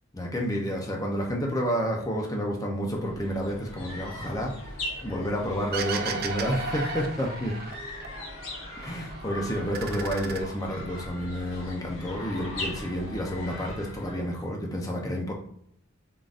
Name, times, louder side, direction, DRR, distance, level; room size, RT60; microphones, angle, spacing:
voice 1, 0.1-4.5 5.0-7.6 8.8-15.3, equal, 15° left, 0 dB, 0.6 m, -30 dB
sound 1, 2.9-14.4, left 1 dB, 70° left, 1.0 m, -39 dB
sound 2, 5.7-8.1 8.4-9.2 9.6-11.1, right 5 dB, 45° right, 0.4 m, -35 dB
3.8 x 3.7 x 2.4 m, 0.70 s
head